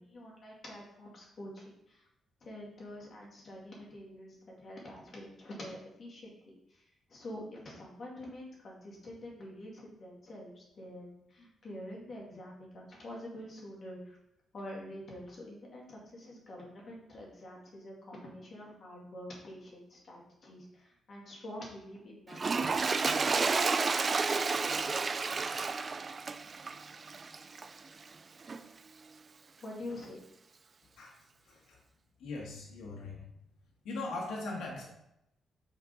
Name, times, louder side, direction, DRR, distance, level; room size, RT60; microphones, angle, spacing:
voice 1, 0.0-2.1 2.4-14.2 14.5-23.7 29.6-30.2, left 1 dB, 40° left, -3 dB, 2.1 m, -47 dB
Toilet flush, 22.3-27.8 28.5-28.6, right 4 dB, 30° right, 0.3 m, -31 dB
voice 2, 31.4-31.8 32.2-33.2 33.8-34.9, left 2 dB, 85° left, -2 dB, 1.6 m, -40 dB
6.2 x 4.6 x 4.0 m, 0.80 s
cardioid pair, 130°, 0 cm